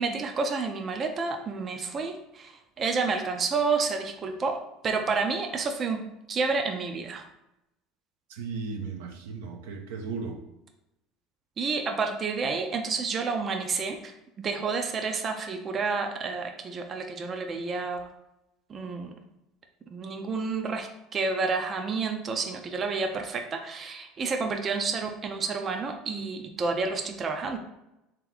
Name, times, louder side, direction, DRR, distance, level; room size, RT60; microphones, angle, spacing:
voice 1, 0.0-7.2 11.6-18.1 18.7-19.2 19.9-27.6, right 4 dB, 35° right, 4 dB, 0.5 m, -30 dB
voice 2, 8.3-10.4, right 4 dB, 80° right, 3 dB, 0.6 m, -35 dB
3.4 x 2.9 x 3.9 m, 0.89 s
supercardioid pair, 95°, 0 cm